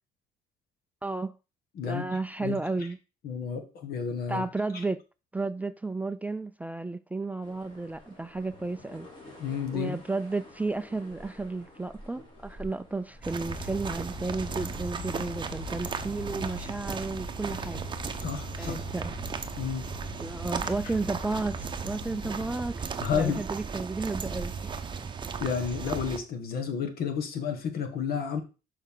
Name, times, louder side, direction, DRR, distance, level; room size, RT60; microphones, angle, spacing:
voice 1, 1.0-1.4 1.8-3.0 4.3-5.0 5.3-9.1 9.7-17.8 18.6-19.1 20.2-24.8, right 3 dB, 10° right, 0.3 m, -33 dB
voice 2, 1.7-2.1 2.4-2.9 3.2-4.4 4.7-4.8 9.4-10.0 18.2-18.8 19.6-19.8 23.0-23.4 25.4-28.4, left 6 dB, 65° left, 1.6 m, -31 dB
sound 1, 7.4-16.3, left 1 dB, 30° left, 3.2 m, -51 dB
sound 2, 13.2-26.2, right 5 dB, 30° right, 0.8 m, -36 dB
sound 3, 13.5-22.6, left 13 dB, 85° left, 0.5 m, -45 dB
6.3 x 5.5 x 3.8 m
cardioid pair, 110°, 17 cm